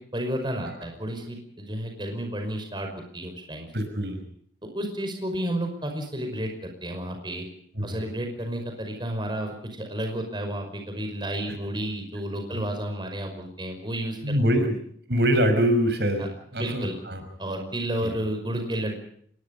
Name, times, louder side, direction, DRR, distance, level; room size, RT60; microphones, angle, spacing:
voice 1, 0.0-3.7 4.6-7.4 7.8-14.3 16.2-16.3 16.6-16.9 17.4-19.0, right 1 dB, 25° right, 4 dB, 5.4 m, -31 dB
voice 2, 3.7-4.2 7.8-8.0 11.5-11.6 14.2-14.8 15.1-16.3 16.5-17.2 18.0-18.2, equal, 70° right, 8 dB, 5.6 m, -24 dB
26.5 x 21.5 x 5.5 m, 0.62 s
head